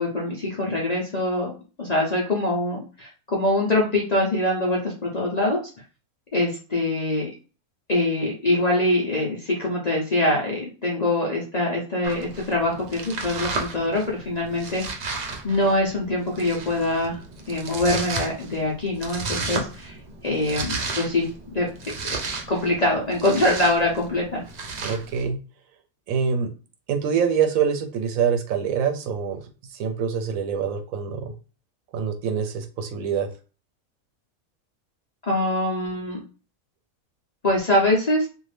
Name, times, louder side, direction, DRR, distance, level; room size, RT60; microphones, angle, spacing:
voice 1, 0.0-1.5 1.8-5.6 6.3-7.3 7.9-15.0 15.4-17.2 17.5-19.9 20.2-21.7 22.5-24.4 35.2-36.2 37.4-38.3, left 1 dB, 40° left, -3 dB, 0.6 m, -24 dB
Domestic sounds home sounds, 12.0-25.3, right 4 dB, 60° right, 0.4 m, -34 dB
voice 2, 24.8-25.4 26.1-26.5 26.9-29.4 29.8-31.3 31.9-33.3, right 7 dB, 75° right, 6 dB, 1.0 m, -25 dB
2.6 x 2.4 x 3.3 m, 0.34 s
omnidirectional pair, 1.5 m